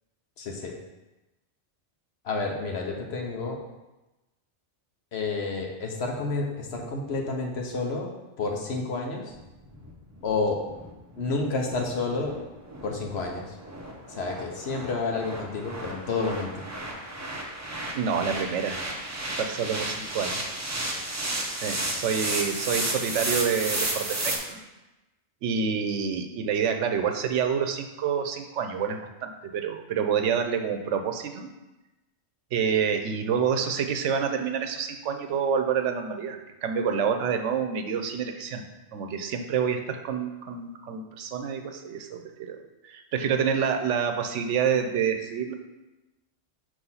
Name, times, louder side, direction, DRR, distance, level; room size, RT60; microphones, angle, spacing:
voice 1, 0.4-0.7 2.2-3.6 5.1-8.1 8.4-9.3 10.2-10.6 11.2-12.4 12.8-13.6 14.1-16.6, left 3 dB, 65° left, 1 dB, 1.1 m, -30 dB
sound 1, 9.3-24.4, right 1 dB, 20° right, 0.5 m, -33 dB
voice 2, 17.9-18.8 19.4-20.4 21.5-24.6 25.4-31.5 32.5-38.6 38.9-42.6 42.8-45.5, right 7 dB, 85° right, 6 dB, 1.0 m, -28 dB
6.2 x 3.0 x 5.5 m, 1.0 s
omnidirectional pair, 1.2 m